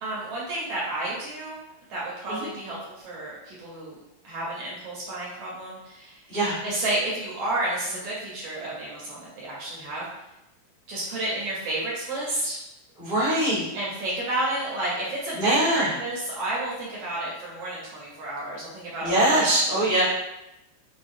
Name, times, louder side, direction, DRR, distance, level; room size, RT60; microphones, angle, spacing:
voice 1, 0.0-1.6 1.9-4.0 4.2-6.2 6.6-10.0 10.9-12.6 13.7-20.0, right 1 dB, 70° right, -5 dB, 1.5 m, -31 dB
voice 2, 6.3-6.6 13.0-13.6 15.3-15.9 19.0-20.0, right 1 dB, 90° left, -12 dB, 0.5 m, -23 dB
6.2 x 2.1 x 2.5 m, 0.90 s
omnidirectional pair, 3.4 m